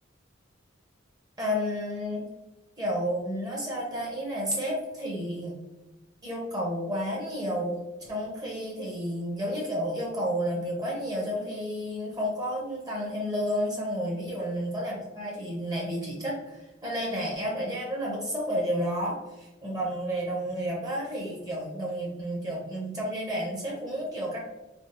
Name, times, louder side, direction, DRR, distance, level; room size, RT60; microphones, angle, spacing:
voice 1, 1.4-2.2 2.8-5.6 6.2-24.4, equal, 20° right, -3 dB, 0.8 m, -31 dB
3.4 x 3.0 x 2.9 m, 1.0 s
head